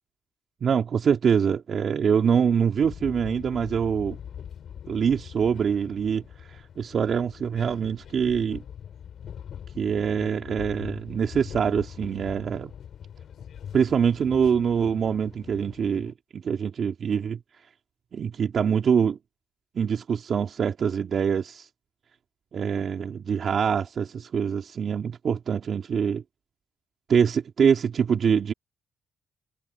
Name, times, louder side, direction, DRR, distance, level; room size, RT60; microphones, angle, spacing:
voice 1, 0.6-4.2 4.9-8.6 9.7-12.7 13.7-17.4 18.1-19.2 19.7-21.7 22.5-26.2 27.1-28.5, right 7 dB, 55° right, 2.7 m, -24 dB
sound 1, 2.8-16.1, left 9 dB, 65° left, 5.9 m, -42 dB
cardioid pair, 90°, 0 cm